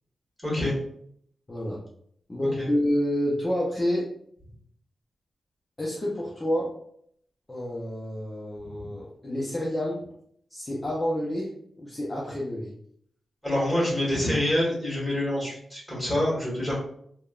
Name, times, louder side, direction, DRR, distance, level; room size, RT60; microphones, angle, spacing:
voice 1, 0.4-0.7 2.6-2.7 13.4-16.7, left 1 dB, ahead, -5 dB, 1.4 m, -26 dB
voice 2, 1.5-1.8 2.3-4.1 5.8-6.7 7.5-10.0 10.5-11.5 11.8-12.7, equal, 20° left, -5 dB, 0.6 m, -28 dB
3.3 x 2.2 x 2.3 m, 0.66 s
wide cardioid pair, 110°, 0 cm